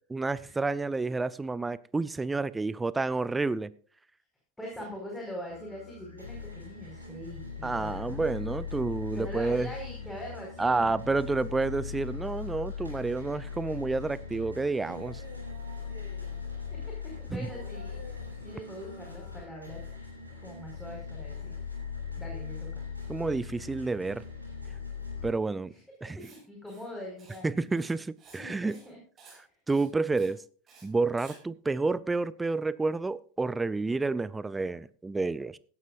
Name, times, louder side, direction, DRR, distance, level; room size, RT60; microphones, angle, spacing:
voice 1, 0.1-3.7 7.6-9.7 10.6-15.2 17.3-17.5 23.1-24.2 25.2-25.7 26.0-26.2 27.4-28.7 29.7-30.4 30.8-35.6, right 3 dB, 10° right, 19 dB, 0.5 m, -29 dB
voice 2, 4.6-8.6 9.1-11.6 16.7-19.8 20.4-21.6 22.2-22.9 25.7-25.8 26.2-27.8 28.4-29.0, equal, 5° left, -1 dB, 4.7 m, -43 dB
sound 1, 5.5-25.3, left 6 dB, 85° right, 6.6 m, -40 dB
Writing, 26.2-26.4 26.7-26.9 27.2-27.4 27.7-28.4 28.7-28.9 29.2-29.4 29.7-29.9 30.2-30.3 30.7-30.8 31.2-31.4, right 4 dB, 30° right, 6.3 m, -54 dB
17.5 x 13.0 x 2.4 m, 0.44 s
figure-of-eight pair, 85°, 0 cm